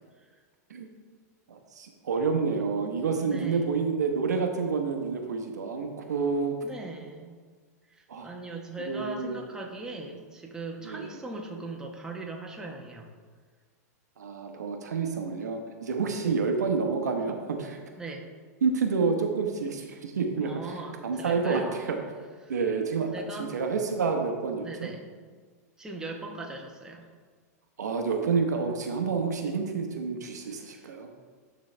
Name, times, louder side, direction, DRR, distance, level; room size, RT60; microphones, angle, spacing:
voice 1, 1.5-6.6 8.1-8.3 8.8-9.4 10.8-11.2 14.2-17.8 18.6-20.5 21.0-22.0 22.5-23.1 23.4-24.9 27.8-31.1, right 5 dB, 85° right, 4 dB, 0.9 m, -29 dB
voice 2, 3.2-3.7 6.6-7.3 7.9-13.1 16.2-16.4 18.0-18.3 20.4-21.8 22.4-22.5 23.1-23.6 24.6-25.1 25.8-27.0 30.5-30.9, right 2 dB, 5° right, 0 dB, 1.0 m, -39 dB
11.5 x 4.0 x 3.2 m, 1.5 s
hypercardioid pair, 115°, 9 cm